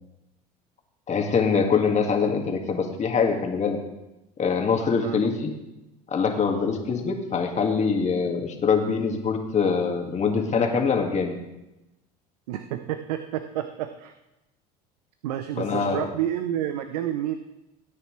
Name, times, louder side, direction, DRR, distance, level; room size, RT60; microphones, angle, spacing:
voice 1, 1.1-3.8 4.4-5.6 6.1-11.4 15.6-16.1, left 5 dB, 35° left, 3 dB, 2.1 m, -24 dB
voice 2, 5.0-5.3 12.5-14.1 15.2-17.4, right 11 dB, 75° right, 9 dB, 0.7 m, -29 dB
17.0 x 9.4 x 3.2 m, 0.96 s
hypercardioid pair, 70°, 20 cm